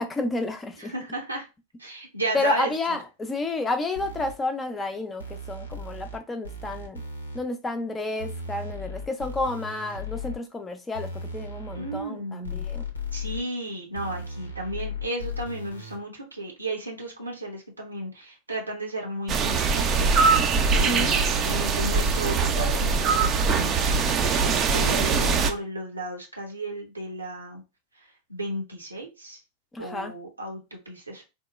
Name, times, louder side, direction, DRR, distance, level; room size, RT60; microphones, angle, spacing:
voice 1, 0.0-0.9 2.3-7.0 7.3-12.8 20.7-21.1 24.8-25.4 29.7-30.1, left 2 dB, 15° left, 0.6 m, -31 dB
voice 2, 0.8-1.5 1.8-2.7 11.7-12.7 13.1-23.9 24.4-27.6 28.3-29.4 29.8-31.2, right 1 dB, 85° right, 0.9 m, -34 dB
sound 1, 4.0-4.3 5.2-6.2 6.4-7.4 8.2-10.4 10.9-12.0 12.4-13.4 13.9-16.0, left 3 dB, 75° left, 0.7 m, -36 dB
sound 2, 19.3-25.5, right 5 dB, 30° right, 0.5 m, -22 dB
3.6 x 2.2 x 3.1 m
figure-of-eight pair, 90°, 0 cm